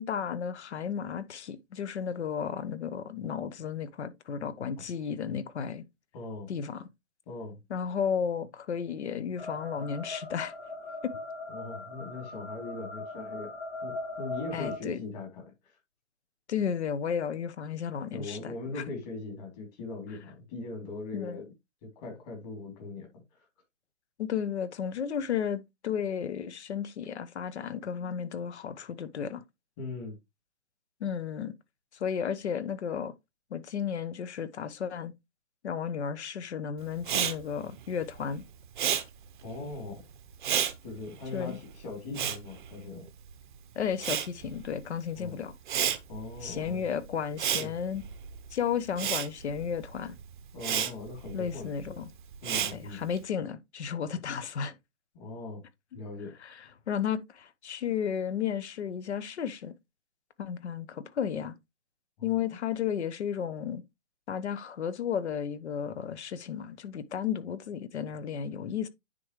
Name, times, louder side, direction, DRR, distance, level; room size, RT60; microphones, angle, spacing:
voice 1, 0.0-5.8 6.5-6.9 7.7-10.5 11.0-11.1 14.5-15.0 16.5-18.8 21.1-21.4 24.2-29.4 31.0-31.5 31.9-33.1 33.5-35.1 35.6-38.4 41.3-41.6 43.7-45.5 46.4-48.0 48.5-50.2 51.3-52.1 52.7-54.8 56.4-56.5 56.9-59.7 60.4-61.5 62.2-63.8 64.3-68.9, left 7 dB, 60° left, 0.9 m, -33 dB
voice 2, 6.1-6.5 7.3-7.6 11.5-13.5 13.8-15.8 18.1-21.5 21.8-23.4 29.8-30.2 39.4-40.0 40.8-43.1 45.2-45.4 46.1-46.8 47.6-47.7 50.5-51.7 52.4-53.0 55.1-55.6 55.9-56.4 62.2-62.3, left 3 dB, 30° left, 3.0 m, -40 dB
sound 1, 9.4-14.8, left 2 dB, 10° left, 0.9 m, -39 dB
Respiratory sounds, 37.0-43.5 43.7-53.2, right 9 dB, 40° right, 0.7 m, -33 dB
9.8 x 3.8 x 3.1 m
hypercardioid pair, 150°, 39 cm